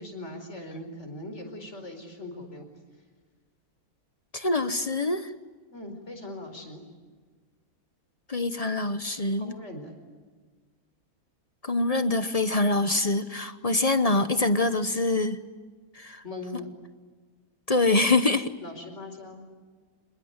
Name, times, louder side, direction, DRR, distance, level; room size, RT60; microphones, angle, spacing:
voice 1, 0.0-2.7 5.7-6.8 9.4-9.9 16.2-16.7 18.6-19.4, left 2 dB, 50° left, 6 dB, 5.0 m, -40 dB
voice 2, 4.3-5.3 8.3-9.6 11.6-15.4 15.9-16.2 17.7-18.5, left 2 dB, 30° left, 11 dB, 0.9 m, -25 dB
26.5 x 22.5 x 9.5 m, 1.5 s
omnidirectional pair, 1.6 m